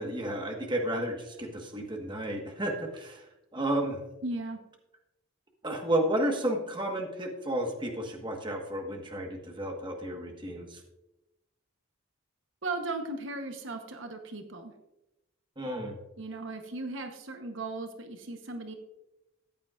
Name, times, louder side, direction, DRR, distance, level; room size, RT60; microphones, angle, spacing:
voice 1, 0.0-4.0 5.6-10.8 15.6-16.0, right 1 dB, 25° right, 2 dB, 1.4 m, -32 dB
voice 2, 4.2-4.6 12.6-14.7 16.2-18.7, right 2 dB, 65° right, 6 dB, 1.0 m, -37 dB
14.0 x 9.3 x 2.5 m, 0.93 s
head